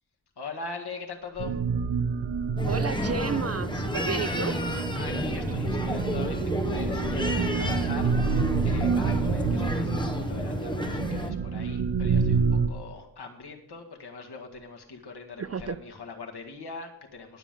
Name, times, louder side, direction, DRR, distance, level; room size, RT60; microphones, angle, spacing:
voice 1, 0.4-1.6 5.0-17.4, left 4 dB, 65° left, 1.8 m, -41 dB
sound 1, 1.4-12.7, right 5 dB, 85° right, 0.9 m, -28 dB
sound 2, 2.6-11.3, left 1 dB, 10° left, 1.0 m, -31 dB
voice 2, 2.7-4.6 15.4-15.8, right 6 dB, 40° right, 0.4 m, -32 dB
21.0 x 7.2 x 3.7 m
wide cardioid pair, 120°, 42 cm